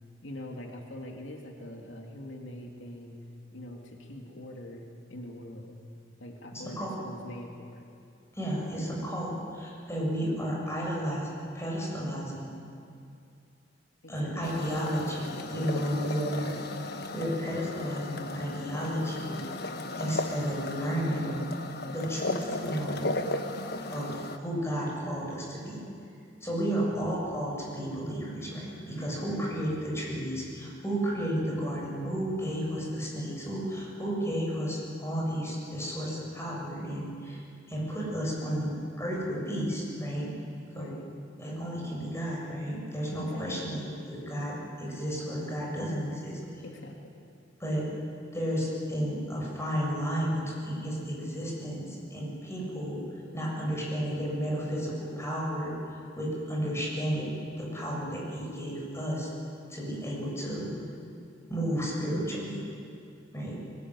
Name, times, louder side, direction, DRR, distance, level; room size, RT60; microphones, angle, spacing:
voice 1, 0.2-3.2 3.5-5.7 6.2-7.8 14.0-14.7 26.7-27.1 29.2-29.5 40.7-41.1 43.2-43.7 46.6-47.0, left 1 dB, 90° left, 1 dB, 2.6 m, -44 dB
voice 2, 6.5-7.0 8.3-11.3 11.5-12.5 14.1-16.6 17.1-19.4 20.0-21.4 21.9-23.1 23.9-25.8 26.4-37.4 37.7-40.3 40.7-40.9 41.4-46.4 47.6-47.9 48.3-53.0 53.3-59.3 59.7-60.7 61.5-62.6 63.3-63.6, equal, 15° left, -4 dB, 7.4 m, -32 dB
sound 1, 14.4-24.4, left 2 dB, 60° left, 1.4 m, -36 dB
23.5 x 20.5 x 9.7 m, 2.5 s
head